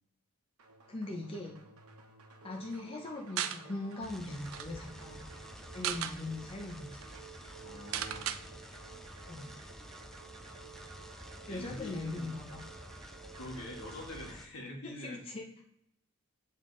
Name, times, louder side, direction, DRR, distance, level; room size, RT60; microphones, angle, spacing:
sound 1, 0.6-14.3, right 5 dB, 85° right, 1.0 m, -53 dB
voice 1, 0.9-1.6 2.4-5.2 5.7-7.0 9.3-9.5 11.5-12.7 14.8-15.6, left 2 dB, 25° left, 0 dB, 0.7 m, -40 dB
sound 2, 3.4-3.6 4.1-4.2 4.4-4.7 5.6-6.2 6.7-6.8 7.0-7.2 7.9-8.4, right 10 dB, 65° right, 0.4 m, -35 dB
sound 3, 4.0-14.5, equal, ahead, 0.3 m, -50 dB
voice 2, 7.6-8.4 11.5-12.4 13.3-15.2, left 1 dB, 70° left, 0 dB, 1.6 m, -45 dB
7.1 x 3.6 x 3.8 m, 0.79 s
head